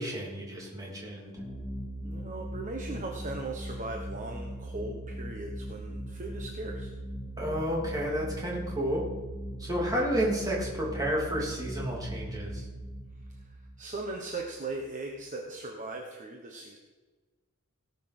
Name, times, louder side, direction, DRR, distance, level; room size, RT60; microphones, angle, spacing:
voice 1, 0.0-1.3 7.4-9.0 9.6-12.6, equal, 15° right, -4 dB, 3.0 m, -31 dB
sound 1, 1.4-14.7, right 1 dB, 10° left, 2.4 m, -39 dB
voice 2, 2.0-6.9 13.3-16.8, right 2 dB, 35° right, 2 dB, 1.1 m, -39 dB
17.5 x 5.9 x 6.0 m, 1.3 s
head